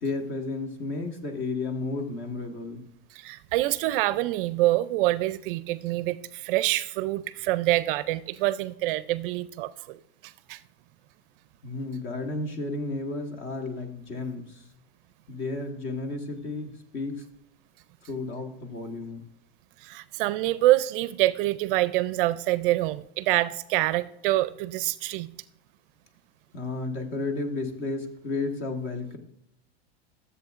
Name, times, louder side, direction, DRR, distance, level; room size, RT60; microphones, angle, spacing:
voice 1, 0.0-2.9 11.6-14.6 15.3-17.2 18.0-19.2 26.5-29.2, left 3 dB, 40° left, 4 dB, 1.6 m, -32 dB
voice 2, 3.1-10.6 19.8-25.3, right 17 dB, 55° right, 15 dB, 0.4 m, -26 dB
13.5 x 7.8 x 2.5 m, 0.75 s
supercardioid pair, 155°, 32 cm